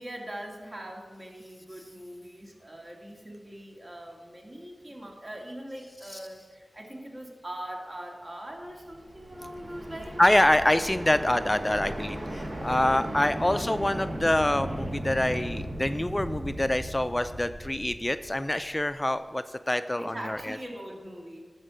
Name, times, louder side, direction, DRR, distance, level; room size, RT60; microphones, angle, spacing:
voice 1, 0.0-10.2 12.9-13.3 20.0-21.4, right 1 dB, 45° right, 0 dB, 2.1 m, -41 dB
sound 1, 8.8-18.8, right 1 dB, 70° right, 1.6 m, -37 dB
sound 2, 9.3-16.5, equal, 20° right, 2.4 m, -49 dB
voice 2, 10.2-20.6, left 1 dB, 25° left, 11 dB, 0.3 m, -26 dB
13.0 x 4.5 x 6.2 m, 1.5 s
cardioid pair, 40°, 0 cm